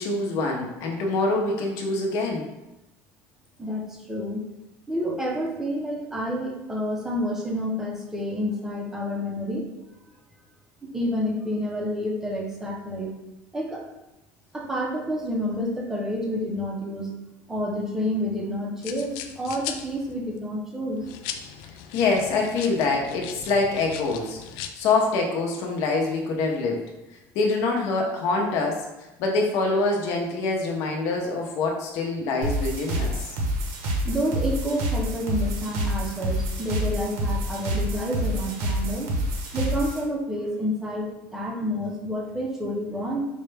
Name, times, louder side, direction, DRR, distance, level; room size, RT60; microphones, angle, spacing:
voice 1, 0.0-2.5 21.9-26.8 27.3-28.8 29.2-33.1, left 3 dB, 55° left, 0 dB, 0.8 m, -25 dB
voice 2, 3.6-4.5 4.9-9.7 10.9-13.1 13.5-13.8 14.5-17.1 17.5-21.0 34.0-39.1 39.5-43.2, equal, 5° right, -1 dB, 0.6 m, -29 dB
sound 1, 18.8-20.4 21.0-24.7, left 8 dB, 70° left, 0.3 m, -38 dB
sound 2, 32.4-40.0, equal, 75° right, 0.8 m, -27 dB
4.9 x 2.2 x 3.3 m, 0.97 s
cardioid pair, 175°, 6 cm